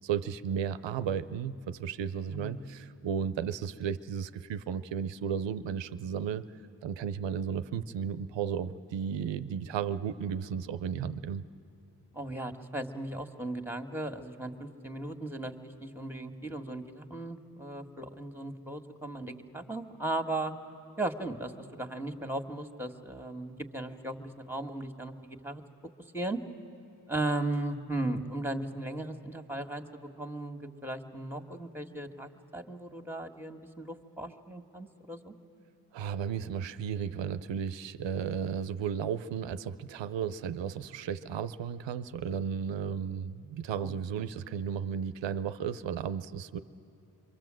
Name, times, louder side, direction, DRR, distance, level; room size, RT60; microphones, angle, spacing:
voice 1, 0.0-6.4 6.8-11.4 35.9-46.6, right 7 dB, 85° right, 14 dB, 0.7 m, -34 dB
voice 2, 2.3-2.7 12.1-20.5 21.0-25.6 26.1-26.4 27.1-35.3 43.8-43.9, right 2 dB, 5° right, 6 dB, 1.8 m, -37 dB
26.5 x 23.5 x 7.6 m, 2.9 s
supercardioid pair, 40°, 43 cm